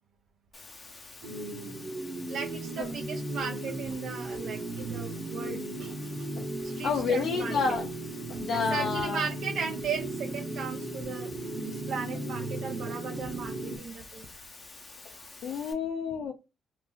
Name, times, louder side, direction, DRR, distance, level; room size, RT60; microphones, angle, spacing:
Water, 0.5-15.7, left 3 dB, 30° left, 0.8 m, -49 dB
sound 1, 1.2-13.8, right 2 dB, 50° right, 0.9 m, -36 dB
voice 1, 2.3-6.3 6.6-7.8 8.5-14.3, right 5 dB, 70° right, 2 dB, 0.5 m, -37 dB
voice 2, 6.8-7.9 8.3-9.3 12.1-12.2 15.0-15.2 15.4-16.3, left 5 dB, 70° left, 1 dB, 0.5 m, -30 dB
2.5 x 2.0 x 3.7 m, 0.25 s
cardioid pair, 90°, 0 cm